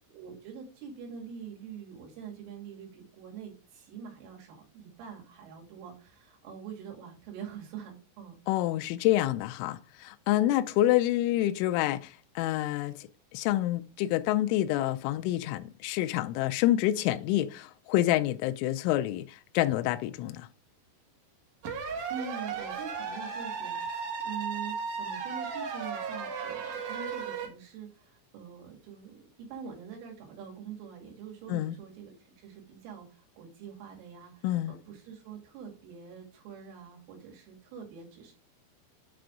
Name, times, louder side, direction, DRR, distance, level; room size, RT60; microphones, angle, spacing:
voice 1, 0.1-8.4 21.8-38.3, right 7 dB, 80° right, 4.6 m, -45 dB
voice 2, 8.5-20.5 31.5-31.8 34.4-34.8, left 14 dB, 85° left, 2.9 m, -28 dB
sound 1, 21.6-27.5, right 6 dB, 65° right, 2.0 m, -35 dB
8.9 x 3.4 x 5.0 m
omnidirectional pair, 5.6 m